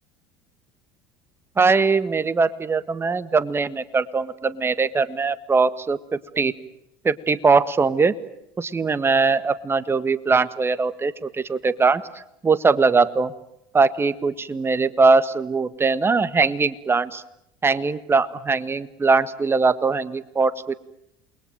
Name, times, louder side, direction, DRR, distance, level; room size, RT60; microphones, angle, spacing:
voice 1, 1.6-6.5 7.0-8.2 8.6-12.0 12.4-13.3 13.7-17.2 17.6-20.7, right 4 dB, 20° right, 14 dB, 1.6 m, -21 dB
28.5 x 21.5 x 9.1 m, 0.79 s
hypercardioid pair, 80°, 11 cm